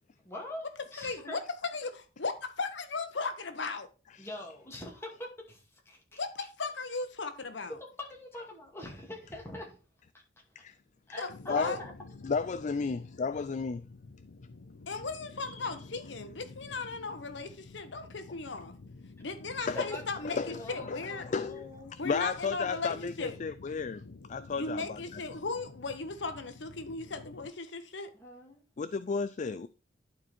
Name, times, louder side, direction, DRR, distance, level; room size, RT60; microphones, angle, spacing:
voice 1, 0.2-1.4 4.2-6.2 8.0-9.8 10.5-10.6 11.1-11.9 19.7-20.0 20.5-21.9 28.1-28.6, left 1 dB, 15° left, 2.4 m, -44 dB
voice 2, 1.0-3.9 6.2-7.8 11.2-11.8 14.9-18.8 19.2-21.2 22.0-23.4 24.6-28.1, left 3 dB, 75° left, 1.1 m, -37 dB
sound 1, 11.3-27.5, left 3 dB, 90° left, 0.7 m, -50 dB
voice 3, 11.5-11.8 12.2-13.8 15.4-15.7 19.7-19.8 20.3-21.0 21.3-21.6 22.0-24.0 24.3-25.2 28.8-29.7, left 5 dB, 40° left, 0.4 m, -33 dB
11.5 x 4.4 x 4.3 m
head